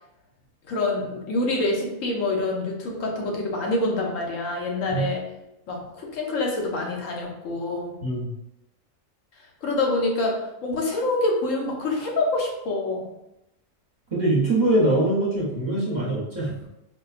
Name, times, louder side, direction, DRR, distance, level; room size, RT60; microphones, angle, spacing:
voice 1, 0.7-5.2 5.7-8.0 9.6-10.4 10.6-13.1, left 2 dB, 75° left, -1 dB, 1.1 m, -26 dB
voice 2, 8.0-8.3 14.1-16.6, right 1 dB, 40° right, -6 dB, 0.9 m, -23 dB
4.2 x 2.2 x 2.4 m, 0.86 s
omnidirectional pair, 1.4 m